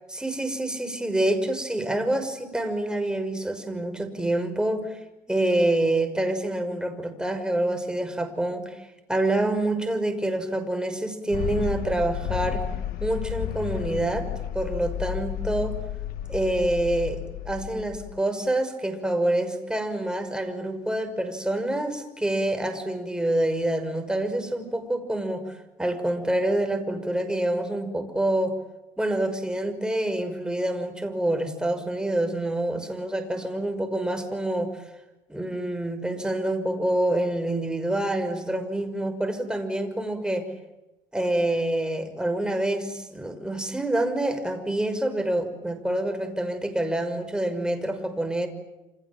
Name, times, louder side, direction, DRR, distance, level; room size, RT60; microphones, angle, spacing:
voice 1, 0.1-5.0 5.3-12.7 13.0-15.8 16.3-28.6 29.0-34.9 35.3-40.5 41.1-48.5, right 1 dB, 5° right, 7 dB, 5.8 m, -27 dB
sound 1, 11.3-18.2, left 12 dB, 70° left, 1.4 m, -32 dB
28.5 x 28.0 x 7.5 m, 0.99 s
cardioid pair, 105°, 16 cm